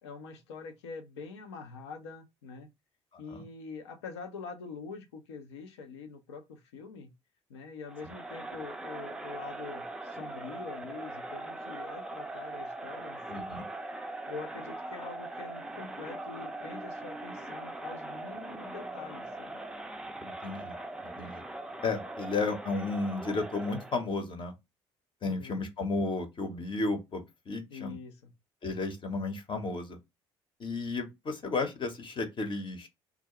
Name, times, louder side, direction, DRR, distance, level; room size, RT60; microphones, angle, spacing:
voice 1, 0.0-2.7 3.2-7.1 7.5-13.5 14.3-19.6 25.2-25.6 27.7-28.3, left 4 dB, 75° left, 0.5 m, -45 dB
Crowd, 7.9-24.1, right 2 dB, 5° right, 0.4 m, -41 dB
voice 2, 13.3-13.7 20.2-20.8 21.2-21.4 21.8-24.5 25.2-28.0 28.6-30.0 30.6-32.9, left 3 dB, 35° left, 0.7 m, -33 dB
2.4 x 2.1 x 2.8 m
figure-of-eight pair, 50°, 14 cm